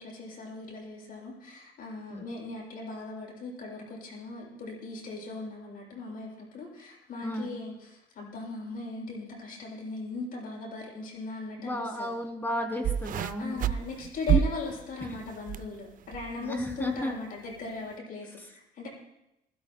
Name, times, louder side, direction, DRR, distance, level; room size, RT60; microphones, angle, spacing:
voice 1, 0.0-12.1 13.4-18.9, left 3 dB, 60° left, -2 dB, 7.7 m, -39 dB
voice 2, 11.6-13.6 14.3-14.4 15.0-15.2 16.4-17.2 18.4-18.5, left 1 dB, 10° left, 3 dB, 2.8 m, -33 dB
sound 1, 12.8-15.7 16.0-16.5 17.2-17.3, right 10 dB, 55° right, 0.5 m, -28 dB
28.5 x 16.0 x 2.2 m, 0.86 s
cardioid pair, 105°, 17 cm